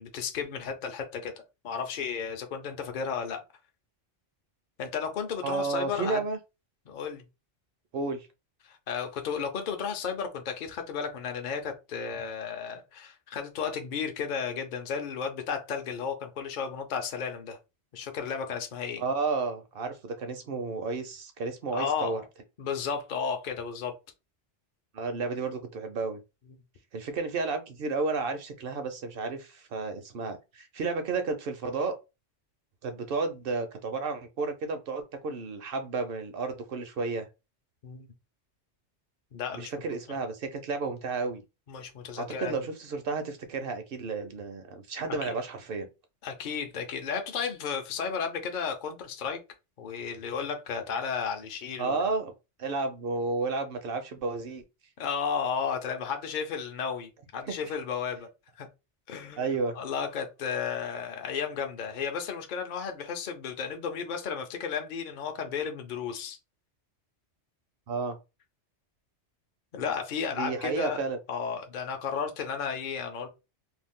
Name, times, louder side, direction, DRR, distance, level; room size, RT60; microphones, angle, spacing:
voice 1, 0.0-1.3 1.6-3.4 4.8-6.2 6.9-7.2 8.6-17.6 17.9-19.0 21.7-22.2 22.6-23.9 37.8-38.1 39.3-39.7 41.7-42.5 45.1-45.3 46.2-49.4 49.8-52.0 55.0-58.3 58.6-58.7 59.1-66.4 69.7-71.0 71.3-73.3, left 6 dB, 55° left, 0.6 m, -33 dB
voice 2, 5.4-6.4 7.9-8.3 19.0-22.2 24.9-26.2 26.9-32.0 32.8-37.3 39.5-41.4 42.2-45.9 51.8-52.3 52.6-54.6 57.5-57.6 59.4-59.7 67.9-68.2 70.4-71.2, right 4 dB, 60° right, 0.7 m, -32 dB
2.6 x 2.3 x 3.5 m
omnidirectional pair, 1.2 m